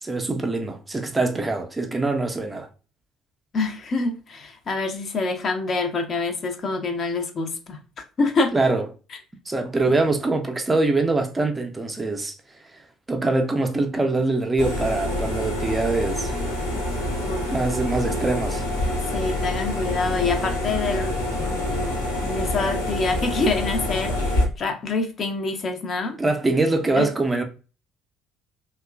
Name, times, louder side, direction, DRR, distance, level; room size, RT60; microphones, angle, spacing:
voice 1, 0.0-2.7 8.5-8.9 9.5-12.4 12.7-12.8 13.1-16.3 17.5-18.7 26.2-27.4, right 2 dB, 20° right, 0.5 m, -23 dB
voice 2, 3.5-7.8 8.2-8.5 17.2-17.5 19.1-26.2 27.0-27.1, left 3 dB, 40° left, 0.5 m, -26 dB
sound 1, 14.6-24.4, left 1 dB, 80° left, 0.9 m, -26 dB
2.9 x 2.2 x 2.2 m
figure-of-eight pair, 50°, 0 cm